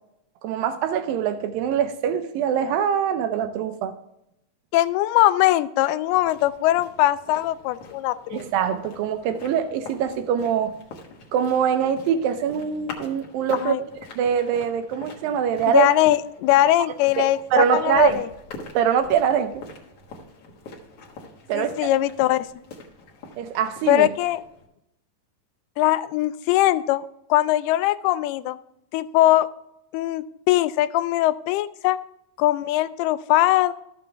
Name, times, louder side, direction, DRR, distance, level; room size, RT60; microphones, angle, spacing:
voice 1, 0.4-3.9 8.3-10.7 11.3-13.7 14.2-15.9 17.5-18.2 18.7-19.7 21.5-21.9 23.4-24.1, right 8 dB, 80° right, 8 dB, 2.2 m, -23 dB
voice 2, 4.7-8.4 13.6-13.8 15.7-18.2 21.5-22.5 23.9-24.4 25.8-27.1 27.3-28.6 28.9-29.5 29.9-32.0 32.4-33.7, left 15 dB, 90° left, 14 dB, 2.5 m, -21 dB
sound 1, 6.1-24.7, left 3 dB, 55° left, 1.8 m, -44 dB
13.0 x 7.0 x 3.4 m, 0.82 s
omnidirectional pair, 4.4 m